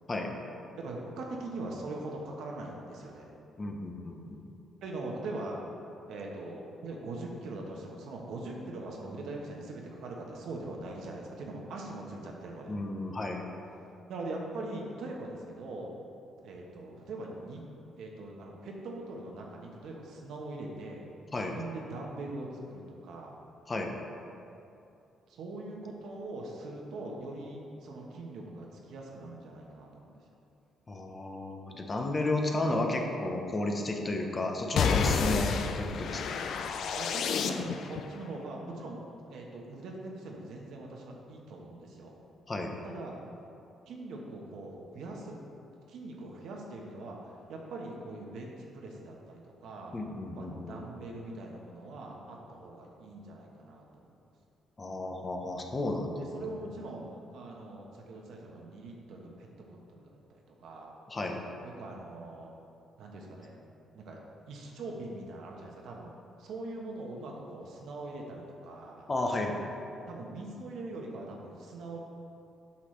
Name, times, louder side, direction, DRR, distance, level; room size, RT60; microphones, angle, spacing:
voice 1, 0.8-3.3 4.8-5.6 6.1-12.7 14.1-15.9 16.4-17.6 18.0-23.4 25.3-30.2 36.9-39.0 39.3-42.2 42.8-43.2 43.9-45.4 45.9-49.9 50.3-54.1 56.2-60.9 61.6-62.5 63.0-63.6 63.9-64.2 64.5-66.1 66.4-69.1 69.8-72.0, right 2 dB, 75° right, 0 dB, 1.1 m, -42 dB
voice 2, 3.6-4.4 12.7-13.4 21.3-21.5 23.7-23.9 30.9-36.4 42.5-42.7 49.9-50.8 54.8-56.2 56.5-56.7 61.1-61.4 69.1-69.6, left 2 dB, 30° left, 2 dB, 0.8 m, -33 dB
sound 1, 34.8-38.0, left 6 dB, 70° left, 0.4 m, -30 dB
8.2 x 5.9 x 3.3 m, 2.7 s
cardioid pair, 90°, 0 cm